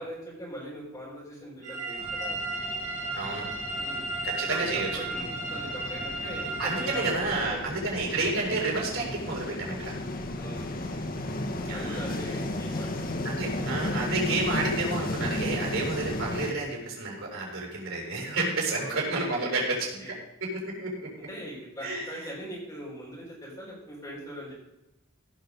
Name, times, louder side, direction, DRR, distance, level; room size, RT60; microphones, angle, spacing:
voice 1, 0.0-2.4 3.8-4.0 4.5-7.9 8.9-9.1 10.4-11.1 11.7-13.1 17.7-18.4 18.7-19.7 20.0-20.2 21.3-24.5, equal, 20° left, -10 dB, 4.5 m, -41 dB
sound 1, 1.6-7.1, right 2 dB, 35° right, 2.5 m, -34 dB
sound 2, 2.0-16.5, left 1 dB, 45° left, 1.1 m, -34 dB
voice 2, 3.1-3.4 4.2-5.1 6.6-9.9 11.6-12.0 13.2-20.1 20.4-21.3 21.8-22.1, right 2 dB, 85° right, -1 dB, 5.0 m, -30 dB
16.0 x 5.9 x 5.3 m, 0.90 s
head